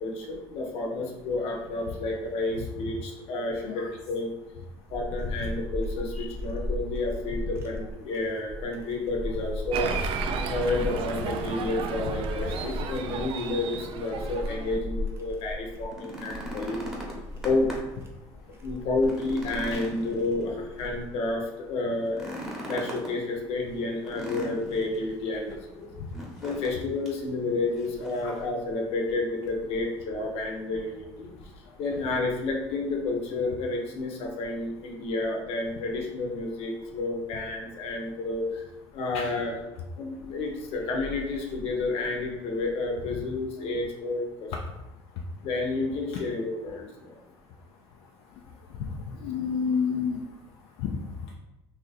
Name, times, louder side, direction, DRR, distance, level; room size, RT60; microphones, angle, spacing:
voice 1, 0.0-4.3 4.9-9.9 10.5-16.8 17.4-17.7 18.6-22.4 22.6-25.9 26.4-31.3 31.8-38.6 38.9-39.6 40.0-44.5 45.4-47.1, left 2 dB, 70° left, 1 dB, 0.8 m, -30 dB
sound 1, 4.4-21.3, left 1 dB, 25° right, 0.7 m, -36 dB
Applause, 9.7-14.8, right 6 dB, 60° right, 0.4 m, -34 dB
sound 2, 15.8-18.0 18.4-18.5 18.9-20.8 22.1-23.1 24.0-25.0 26.1-26.8 27.0-27.2 27.8-28.3 29.5-29.6, right 1 dB, 5° right, 1.0 m, -39 dB
voice 2, 48.8-50.2 50.8-51.0, left 6 dB, 85° left, 0 dB, 0.4 m, -29 dB
2.8 x 2.6 x 4.0 m, 0.99 s
cardioid pair, 110°, 10 cm